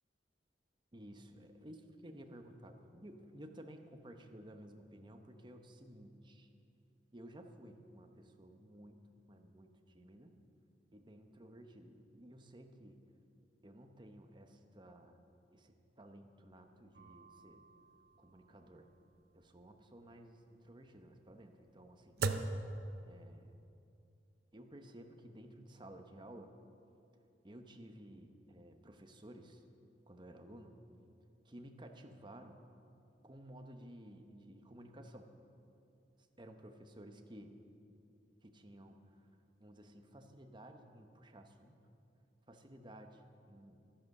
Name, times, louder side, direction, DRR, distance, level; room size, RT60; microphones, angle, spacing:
voice 1, 0.9-6.5 7.1-10.4 10.9-13.0 13.6-15.2 15.5-17.6 18.2-18.9 19.3-22.2 23.0-23.6 24.5-26.5 27.4-29.6 30.1-30.7 31.4-32.6 33.2-35.3 36.4-37.5 38.4-39.2 39.6-41.8 42.5-43.2 43.5-43.8, right 1 dB, 25° right, 5 dB, 0.9 m, -55 dB
sound 1, 16.9-23.6, right 3 dB, 60° right, 0.6 m, -43 dB
12.0 x 10.5 x 6.5 m, 2.6 s
head